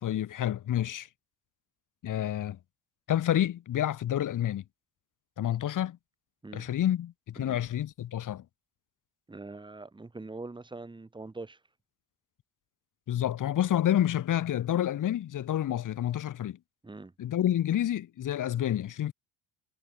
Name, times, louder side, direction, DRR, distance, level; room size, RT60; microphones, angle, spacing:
voice 1, 0.0-1.1 2.0-2.6 3.1-4.6 5.4-6.0 6.5-8.4 13.1-16.6 17.2-19.1, left 11 dB, 45° left, 1.4 m, -29 dB
voice 2, 9.3-11.6 16.8-17.1, right 3 dB, 10° right, 1.2 m, -43 dB
supercardioid pair, 95°, 42 cm